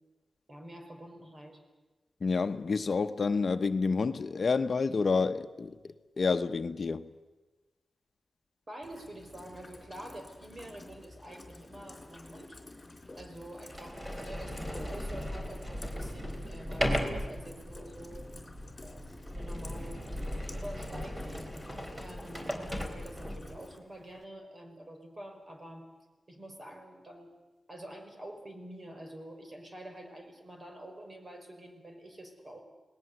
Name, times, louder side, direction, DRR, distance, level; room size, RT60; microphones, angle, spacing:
voice 1, 0.5-1.6 8.7-12.6 13.1-18.3 18.8-21.5 22.0-25.9 26.3-27.3 27.7-32.6, right 1 dB, 40° right, 5.4 m, -47 dB
voice 2, 2.2-5.7 6.2-7.1, left 4 dB, 60° left, 0.9 m, -29 dB
Rain, 8.8-23.8, left 2 dB, 30° left, 4.0 m, -50 dB
Sliding door, 12.3-12.4 13.1-13.2 13.7-23.6, equal, 15° right, 4.1 m, -37 dB
sound 1, 15.5-23.5, right 1 dB, 75° right, 4.1 m, -56 dB
28.5 x 19.0 x 8.1 m
cardioid pair, 75°, 0 cm